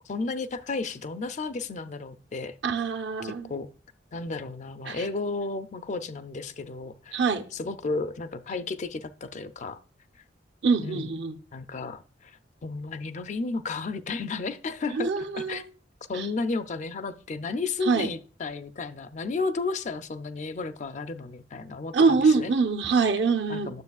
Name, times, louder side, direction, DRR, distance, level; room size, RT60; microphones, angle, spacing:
voice 1, 0.1-2.6 3.2-3.7 4.1-7.2 7.5-9.8 10.8-11.1 11.5-15.7 16.1-22.5 23.5-23.8, left 3 dB, 40° left, 0.4 m, -33 dB
voice 2, 2.6-3.5 4.9-5.0 7.1-7.4 10.6-11.4 14.9-15.6 16.1-16.3 17.8-18.1 21.9-23.7, right 4 dB, 70° right, 0.9 m, -24 dB
9.5 x 7.2 x 2.3 m
head